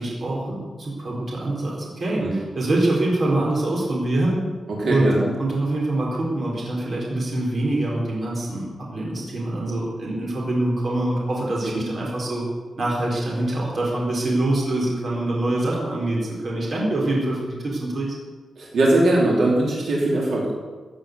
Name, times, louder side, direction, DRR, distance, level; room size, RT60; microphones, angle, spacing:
voice 1, 0.0-4.4 4.9-12.4 12.8-18.1, right 1 dB, 45° right, -3 dB, 4.3 m, -24 dB
voice 2, 4.7-5.2 18.6-20.5, right 1 dB, 70° right, -4 dB, 4.2 m, -20 dB
16.5 x 8.8 x 8.0 m, 1.4 s
wide cardioid pair, 175°, 0 cm